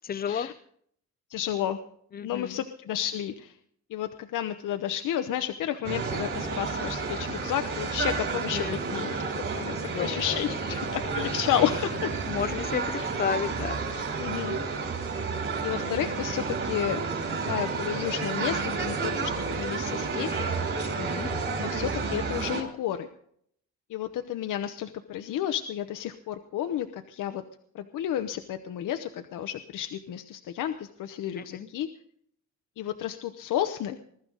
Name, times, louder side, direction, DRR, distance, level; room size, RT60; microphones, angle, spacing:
voice 1, 0.0-0.5 2.1-2.6 8.5-9.1 9.8-10.4 10.9-11.4 12.3-13.8 21.0-21.3 31.4-31.7, left 8 dB, 30° left, 0.6 m, -33 dB
voice 2, 1.3-1.8 2.2-3.5 3.9-12.1 13.0-13.1 14.2-14.6 15.6-17.0 17.4-20.3 21.6-23.1 23.9-27.4 27.7-31.9 32.8-34.0, left 11 dB, 85° left, 0.9 m, -31 dB
sound 1, 5.8-22.6, right 4 dB, 40° right, 4.3 m, -31 dB
21.5 x 13.0 x 3.9 m
cardioid pair, 175°, 30 cm